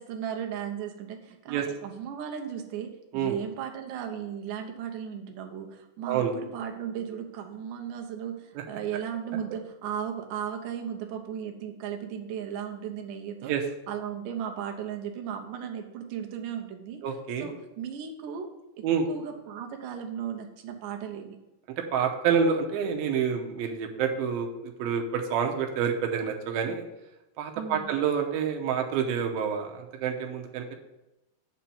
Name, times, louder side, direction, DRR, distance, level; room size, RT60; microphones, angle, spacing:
voice 1, 0.0-13.6 13.9-17.0 17.4-18.5 18.8-21.4 27.6-27.9, right 8 dB, 70° right, 3 dB, 2.4 m, -36 dB
voice 2, 17.0-17.5 18.8-19.1 21.8-26.8 27.4-30.8, right 7 dB, 85° right, 3 dB, 2.7 m, -28 dB
7.8 x 4.5 x 7.0 m, 0.97 s
omnidirectional pair, 4.2 m